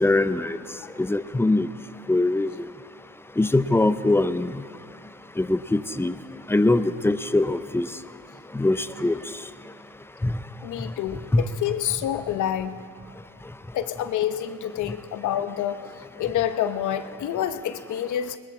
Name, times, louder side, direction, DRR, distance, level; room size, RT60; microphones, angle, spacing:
voice 1, 0.0-0.6 1.0-1.7 2.1-2.5 3.4-4.6 5.4-6.2 6.5-7.9 8.5-9.2 10.2-10.4 11.3-11.4, left 2 dB, 10° left, 13 dB, 0.5 m, -22 dB
voice 2, 10.6-12.8 13.7-15.8 16.2-18.4, left 10 dB, 80° left, 11 dB, 0.8 m, -27 dB
20.0 x 13.0 x 4.3 m, 2.2 s
cardioid pair, 90°, 30 cm